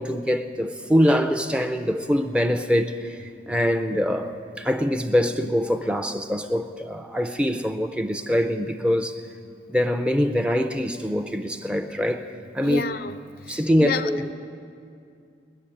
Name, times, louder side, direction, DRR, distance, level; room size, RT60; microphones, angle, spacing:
voice 1, 0.0-9.2 9.7-12.3 12.5-12.8 13.5-14.3, equal, 5° right, 0.5 m, -24 dB
voice 2, 12.6-13.2 13.5-14.1, left 5 dB, 55° left, 0.5 m, -29 dB
20.5 x 7.1 x 10.0 m
head